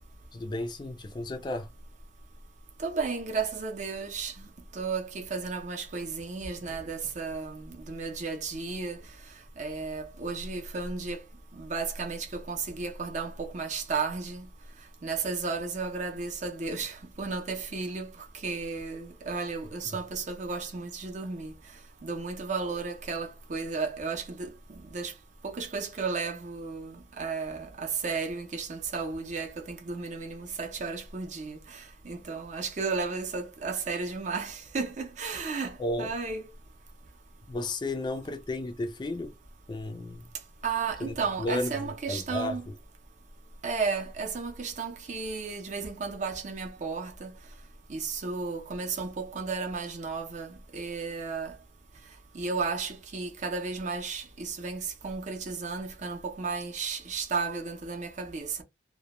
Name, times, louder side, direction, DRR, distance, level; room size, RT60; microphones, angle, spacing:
voice 1, 0.3-1.7 35.8-36.1 37.5-39.3 39.7-40.3 41.0-42.6, left 2 dB, 25° left, 0.3 m, -33 dB
voice 2, 2.8-9.0 9.6-11.2 11.5-14.5 15.0-21.5 22.0-25.1 25.4-36.4 40.6-42.7 43.6-47.3 47.9-51.6 52.3-58.6, right 4 dB, 45° right, 0.5 m, -34 dB
2.1 x 2.1 x 2.9 m
head